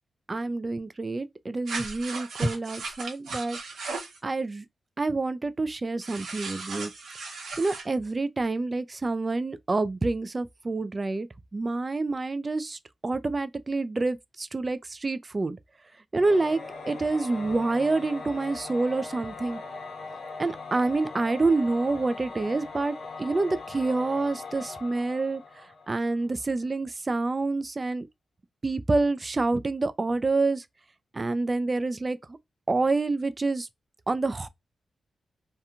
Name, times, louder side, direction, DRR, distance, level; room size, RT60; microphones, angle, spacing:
voice 1, 0.3-3.6 4.2-4.6 5.0-6.9 7.6-11.3 11.5-15.6 16.1-19.6 20.4-25.4 25.9-28.1 28.6-30.6 31.1-32.2 32.7-33.7 34.1-34.5, right 3 dB, 30° right, 0.3 m, -27 dB
sound 1, 1.7-4.2 6.0-7.9, right 3 dB, 85° right, 1.0 m, -35 dB
Singing / Musical instrument, 16.1-26.2, left 3 dB, 80° left, 0.8 m, -40 dB
2.9 x 2.2 x 2.4 m
cardioid pair, 95°, 0 cm